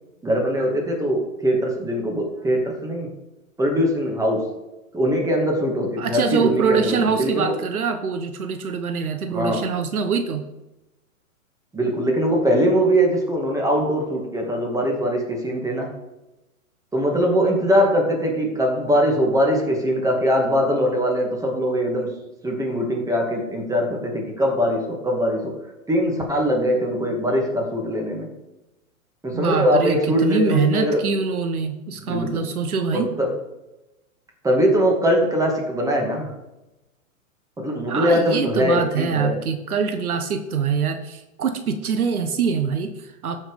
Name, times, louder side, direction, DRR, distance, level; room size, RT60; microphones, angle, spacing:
voice 1, 0.2-3.1 3.6-4.4 4.9-7.5 9.3-9.6 11.7-15.9 16.9-22.1 22.4-25.5 25.9-28.3 29.2-31.0 32.0-32.4 32.9-33.3 34.4-36.3 37.6-39.4, equal, 10° right, 0 dB, 2.4 m, -21 dB
voice 2, 6.0-10.4 29.3-33.1 37.9-43.4, right 5 dB, 85° right, 7 dB, 1.3 m, -24 dB
13.5 x 6.2 x 5.1 m, 0.99 s
hypercardioid pair, 125°, 42 cm